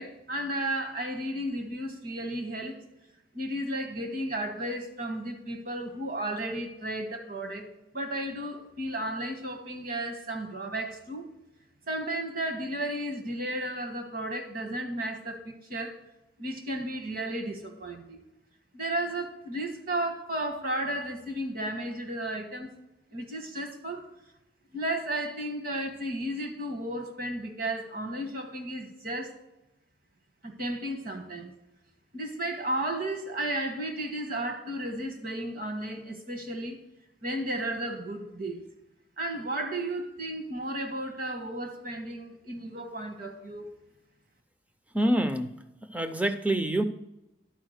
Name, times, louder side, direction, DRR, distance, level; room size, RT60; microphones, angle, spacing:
voice 1, 0.0-2.8 3.3-7.7 7.9-11.3 11.9-16.0 16.4-18.2 18.7-22.7 23.1-24.1 24.7-29.4 30.4-31.5 32.1-36.8 37.2-38.7 39.2-43.7, right 1 dB, 50° right, 1.4 m, -33 dB
voice 2, 44.9-45.6 45.9-46.8, right 1 dB, 10° right, 0.5 m, -26 dB
11.5 x 4.8 x 6.5 m
head